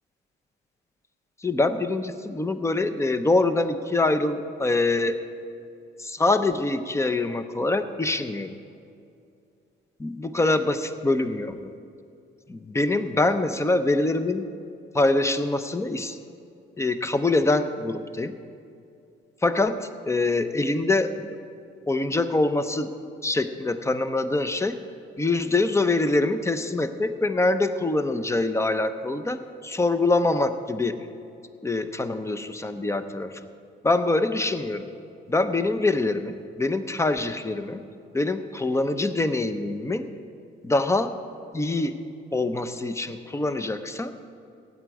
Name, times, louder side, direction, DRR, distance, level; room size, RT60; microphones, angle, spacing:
voice 1, 1.4-5.2 6.0-8.5 10.0-10.8 11.0-11.7 12.5-14.5 14.9-16.2 16.8-18.3 19.4-21.4 21.9-22.9 23.2-24.8 25.2-31.1 31.6-33.4 33.8-34.9 35.3-37.8 38.1-40.1 40.6-41.1 41.5-41.9 42.3-44.2, left 2 dB, 15° left, 10 dB, 0.7 m, -24 dB
16.0 x 9.3 x 4.9 m, 2.5 s
cardioid pair, 90°, 20 cm